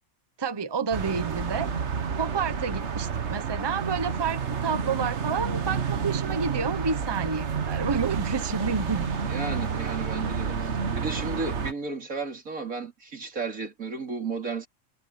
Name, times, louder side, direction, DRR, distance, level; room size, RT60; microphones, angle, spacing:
voice 1, 0.4-1.7 2.2-9.1, right 5 dB, 20° right, 0.9 m, -29 dB
sound 1, 0.9-11.7, right 6 dB, 55° right, 1.5 m, -30 dB
voice 2, 9.3-14.7, right 4 dB, 85° right, 3.7 m, -34 dB
omnidirectional pair, 1.4 m